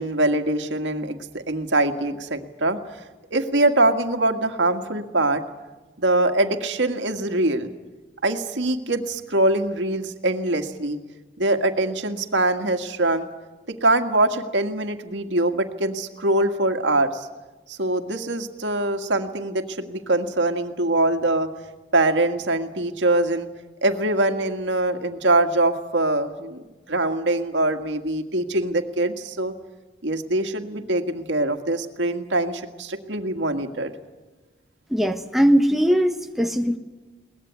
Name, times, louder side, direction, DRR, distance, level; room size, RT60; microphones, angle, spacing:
voice 1, 0.0-2.8 3.3-5.4 6.0-7.7 8.2-11.0 11.4-13.3 13.7-17.3 17.7-21.5 21.9-23.5 23.8-26.6 26.9-29.5 30.0-33.9, right 2 dB, 90° right, 6 dB, 1.8 m, -23 dB
voice 2, 34.9-36.8, equal, ahead, 5 dB, 1.1 m, -20 dB
22.0 x 19.5 x 9.5 m, 1.2 s
head